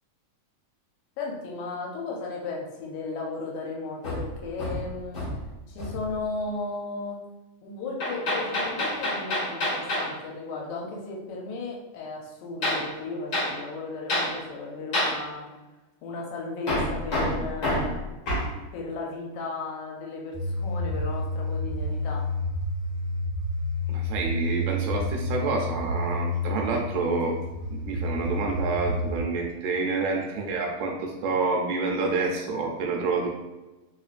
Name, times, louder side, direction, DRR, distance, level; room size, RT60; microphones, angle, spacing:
voice 1, 1.2-5.2 5.7-7.2 7.6-15.5 16.0-18.0 18.7-22.2, left 3 dB, 80° left, -1 dB, 1.9 m, -35 dB
Hammer, 4.0-5.5 5.8-6.1 8.0-10.1 12.6-12.9 13.3-13.5 14.1-14.3 14.9-15.2 16.7-18.5, left 1 dB, 55° left, 1.3 m, -28 dB
sound 1, 20.3-29.2, left 1 dB, 35° left, 0.5 m, -30 dB
voice 2, 23.9-27.4 27.7-33.3, right 4 dB, 80° right, 1 dB, 1.8 m, -28 dB
4.3 x 3.0 x 2.4 m, 1.1 s
omnidirectional pair, 3.4 m